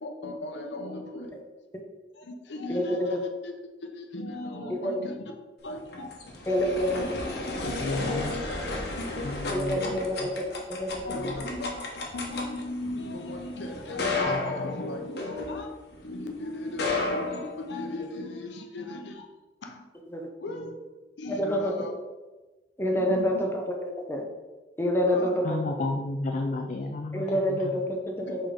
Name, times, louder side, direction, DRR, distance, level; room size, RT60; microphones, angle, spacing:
voice 1, 0.0-1.3 2.1-3.2 3.4-3.5 3.8-5.3 5.6-6.1 6.5-6.6 7.0-9.3 9.8-10.0 11.0-15.7 16.0-19.3 19.6-19.9 20.4-20.7 21.2-21.9 22.9-23.3 25.1-25.4 28.3-28.4, left 2 dB, 85° left, 3 dB, 0.8 m, -37 dB
voice 2, 2.7-3.2 4.7-5.0 6.5-7.0 9.5-10.2 10.7-11.0 20.1-20.2 21.3-21.7 22.8-23.5 24.1-24.2 24.8-25.6 27.1-28.4, equal, 15° left, 1 dB, 0.8 m, -27 dB
sound 1, 5.7-16.0 16.6-18.1, left 2 dB, 65° left, 1.1 m, -33 dB
voice 3, 7.6-8.3 9.2-10.3 11.2-11.4 14.3-14.8 25.4-27.8, left 2 dB, 45° left, 3 dB, 0.4 m, -33 dB
5.1 x 3.8 x 5.1 m, 1.2 s
head